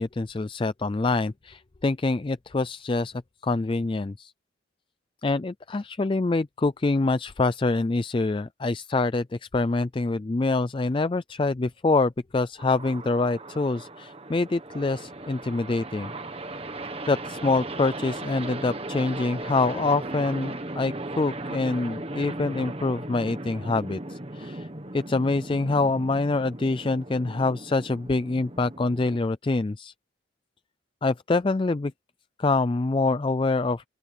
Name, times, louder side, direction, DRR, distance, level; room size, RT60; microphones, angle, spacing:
voice 1, 0.0-3.1 3.4-4.3 5.2-16.1 17.1-24.7 24.9-29.9 31.0-31.9 32.4-33.8, left 3 dB, 25° left, 0.3 m, -25 dB
sound 1, 12.6-29.2, right 2 dB, 30° right, 1.5 m, -37 dB
open air
head